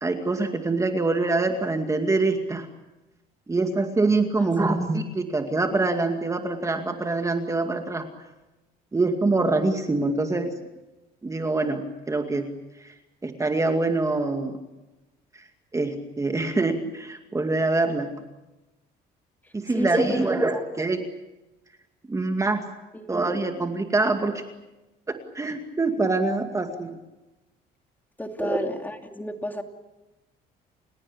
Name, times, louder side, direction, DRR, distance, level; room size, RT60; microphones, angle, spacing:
voice 1, 0.0-2.7 3.5-8.1 8.9-10.5 11.2-12.5 12.8-12.9 13.2-14.6 15.7-18.1 19.5-21.0 22.1-22.6 23.1-24.4 25.1-27.0 28.4-28.6, right 3 dB, 20° right, 5 dB, 2.3 m, -25 dB
voice 2, 4.4-4.7 19.7-20.6 22.9-23.1 28.2-29.6, left 1 dB, 10° left, 4 dB, 2.8 m, -31 dB
30.0 x 17.5 x 8.7 m, 1.0 s
cardioid pair, 110°, 17 cm